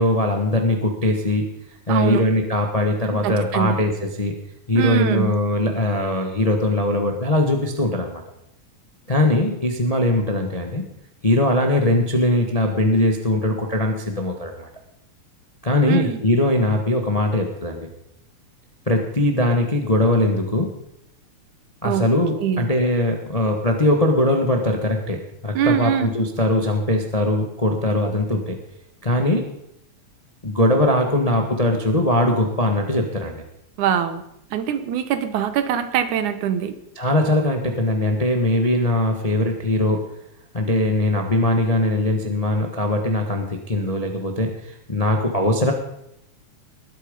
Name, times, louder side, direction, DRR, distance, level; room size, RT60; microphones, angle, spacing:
voice 1, 0.0-1.5 1.9-3.9 4.2-4.3 4.7-8.2 9.1-10.8 11.2-14.7 15.6-17.9 18.9-20.7 21.8-28.6 29.0-29.5 30.4-33.4 37.0-40.0 40.5-45.7, left 1 dB, 30° left, 3 dB, 0.6 m, -21 dB
voice 2, 1.9-2.2 3.1-3.8 4.8-5.3 15.9-16.2 21.8-22.0 22.4-22.7 25.5-26.1 33.8-34.2 34.5-36.8, right 9 dB, 85° right, 11 dB, 2.5 m, -23 dB
20.0 x 8.6 x 5.4 m, 0.77 s
omnidirectional pair, 3.3 m